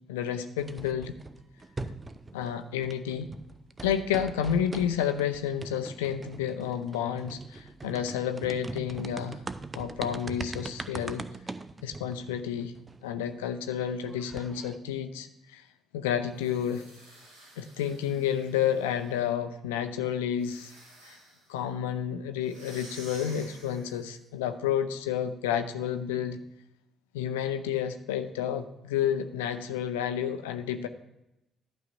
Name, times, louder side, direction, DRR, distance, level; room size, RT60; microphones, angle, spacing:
voice 1, 0.1-1.1 2.3-3.3 3.8-9.4 9.7-11.2 11.8-12.7 13.0-15.6 15.9-16.8 17.6-20.7 21.1-21.2 21.5-26.4 27.1-30.9, left 9 dB, 70° left, 8 dB, 0.6 m, -30 dB
sound 1, 0.6-2.6 2.8-13.3 13.7-13.8 14.0-14.8, right 3 dB, 25° right, 0.6 m, -42 dB
sound 2, 16.3-19.3 20.3-21.5 22.4-24.1, right 1 dB, 80° right, 2.3 m, -51 dB
11.5 x 4.0 x 5.3 m, 0.86 s
figure-of-eight pair, 45°, 0 cm